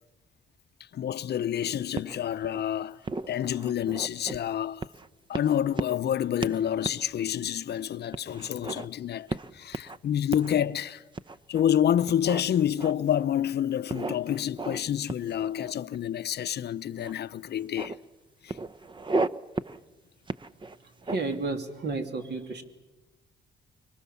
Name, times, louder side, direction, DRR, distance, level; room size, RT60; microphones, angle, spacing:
voice 1, 0.9-3.0 3.3-4.9 5.3-9.3 9.5-11.0 11.5-17.9 18.4-18.6, left 10 dB, 55° left, 0.7 m, -28 dB
sound 1, 1.9-2.6 3.0-4.4 4.8-5.1 5.3-6.1 6.4-6.6 6.8-7.0 7.5-7.6 8.1-8.9 9.3-10.0 10.3-10.5 11.1-11.6 12.1-13.2 13.9-14.8 15.1-16.0 17.0-17.1 17.4-18.0 18.5-19.3 19.6-19.8 20.3-21.4, right 3 dB, 25° right, 0.7 m, -34 dB
voice 2, 21.1-22.6, right 3 dB, 60° right, 2.9 m, -31 dB
25.0 x 23.0 x 7.1 m
cardioid pair, 90°, 20 cm